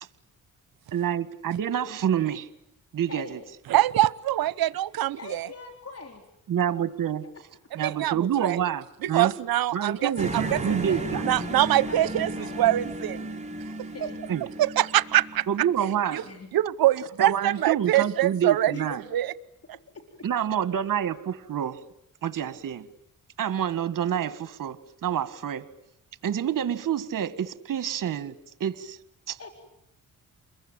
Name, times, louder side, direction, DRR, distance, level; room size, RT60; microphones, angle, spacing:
voice 1, 0.9-2.5 2.9-3.4 6.5-7.2 7.8-9.3 9.7-11.2 14.3-14.5 15.5-16.2 17.2-19.0 20.2-21.8 22.2-22.9 23.4-25.6 26.2-28.3 28.6-29.0 29.3-29.4, right 9 dB, 65° right, 13 dB, 1.9 m, -27 dB
voice 2, 3.1-3.5 5.2-6.3 10.0-12.5 13.8-14.2 16.2-16.5 18.7-19.0 19.9-20.3 29.4-29.5, left 4 dB, 45° left, 5 dB, 3.9 m, -42 dB
voice 3, 3.7-5.5 7.8-8.6 9.0-10.1 10.5-10.6 11.2-13.3 14.6-15.5 16.1-16.2 16.5-18.7 19.1-19.3, right 14 dB, 80° right, 19 dB, 1.0 m, -24 dB
sound 1, 10.2-15.8, right 1 dB, 20° right, 4.3 m, -34 dB
29.5 x 22.5 x 9.0 m, 0.79 s
cardioid pair, 75°, 35 cm